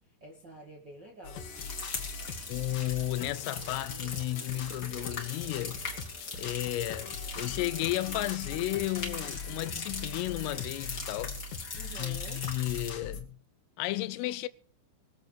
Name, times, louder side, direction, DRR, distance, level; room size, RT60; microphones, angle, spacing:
voice 1, 0.2-1.6 11.7-12.4, right 1 dB, 75° right, 1.0 m, -48 dB
sound 1, 1.2-13.2, left 3 dB, 55° left, 2.8 m, -42 dB
sound 2, 1.5-12.9, left 4 dB, 30° left, 1.8 m, -41 dB
voice 2, 2.5-5.9 6.4-11.4 12.0-13.4 13.8-14.5, left 17 dB, 85° left, 3.4 m, -33 dB
22.5 x 7.9 x 5.1 m
omnidirectional pair, 5.7 m